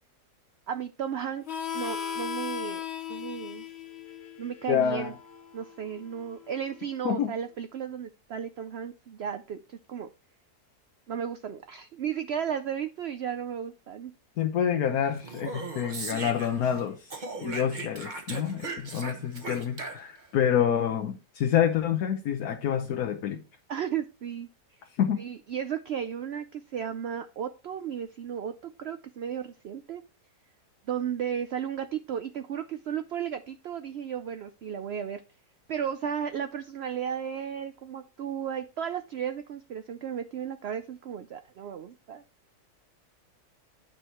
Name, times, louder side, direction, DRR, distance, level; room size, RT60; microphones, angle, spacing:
voice 1, 0.7-1.5 1.7-2.8 3.1-3.7 4.4-5.1 5.5-10.1 11.1-14.1 23.7-24.8 25.2-30.0 30.9-35.2 35.7-42.2, right 8 dB, 65° right, 0.6 m, -34 dB
Harmonica, 1.5-6.7, left 8 dB, 50° left, 1.0 m, -38 dB
voice 2, 4.7-5.1 7.0-7.3 14.4-17.1 17.4-23.4 25.0-25.2, left 9 dB, 70° left, 1.3 m, -27 dB
Speech, 15.2-16.8 17.1-20.3, right 3 dB, 35° right, 1.1 m, -38 dB
9.1 x 4.8 x 4.3 m
omnidirectional pair, 1.7 m